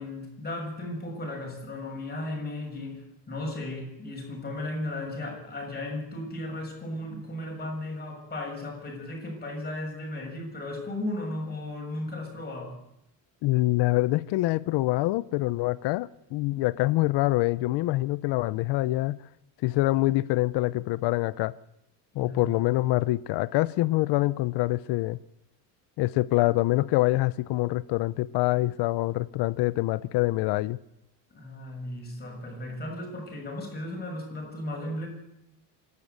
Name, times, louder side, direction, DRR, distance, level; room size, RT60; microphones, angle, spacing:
voice 1, 0.0-12.8 22.1-22.6 31.3-35.1, left 1 dB, 20° left, 6.6 m, -35 dB
voice 2, 13.4-19.2 19.6-21.5 22.1-25.2 26.0-30.8, left 18 dB, 70° left, 0.7 m, -25 dB
27.0 x 12.0 x 8.2 m
cardioid pair, 150°, 42 cm